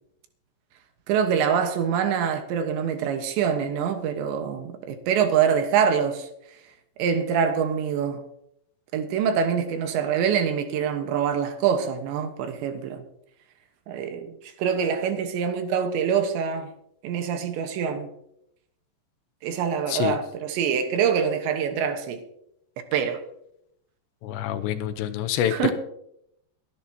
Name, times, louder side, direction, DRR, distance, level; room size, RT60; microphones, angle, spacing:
voice 1, 1.1-6.3 7.0-8.2 8.9-13.0 13.9-14.3 14.6-16.7 17.0-18.1 19.4-22.2 22.9-23.2 25.5-25.7, right 7 dB, 75° right, 3.4 m, -25 dB
voice 2, 24.2-25.7, left 10 dB, 85° left, 2.9 m, -26 dB
23.0 x 11.0 x 2.9 m
omnidirectional pair, 5.3 m